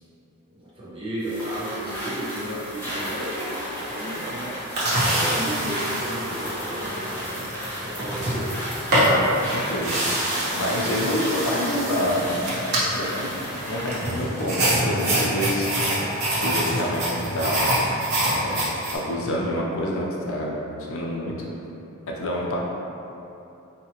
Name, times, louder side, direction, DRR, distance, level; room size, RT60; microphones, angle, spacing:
voice 1, 0.5-4.6 4.9-7.5 7.8-8.5, right 1 dB, 25° right, -9 dB, 0.9 m, -33 dB
sound 1, 1.2-14.2, equal, 10° left, 0.9 m, -34 dB
sound 2, 4.8-19.0, right 1 dB, 50° right, 0.9 m, -26 dB
voice 2, 8.9-10.0 10.5-12.5 12.9-15.7 16.4-17.1 17.3-17.8 18.2-18.6 18.9-20.5 20.8-21.3 22.2-22.6, left 1 dB, 65° left, -3 dB, 0.6 m, -27 dB
4.7 x 2.8 x 2.9 m, 2.9 s
head